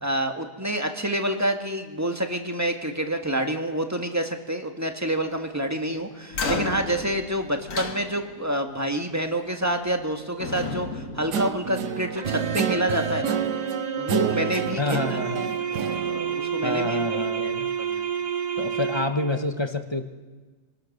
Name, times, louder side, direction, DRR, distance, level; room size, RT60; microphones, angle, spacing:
voice 1, 0.0-13.4 14.0-15.2 15.7-17.5 17.9-18.1, right 1 dB, 10° right, 4 dB, 1.6 m, -28 dB
sound 1, 6.3-8.6 9.7-10.1 10.4-12.2, left 3 dB, 50° left, 2.0 m, -33 dB
Guitar, 11.3-17.1, right 8 dB, 85° right, 1.5 m, -30 dB
sound 2, 12.1-19.4, right 7 dB, 35° right, 0.7 m, -30 dB
voice 2, 14.8-15.5 16.6-17.7 18.6-20.0, left 2 dB, 20° left, 7 dB, 1.0 m, -27 dB
27.5 x 19.5 x 6.6 m, 1.4 s
omnidirectional pair, 1.8 m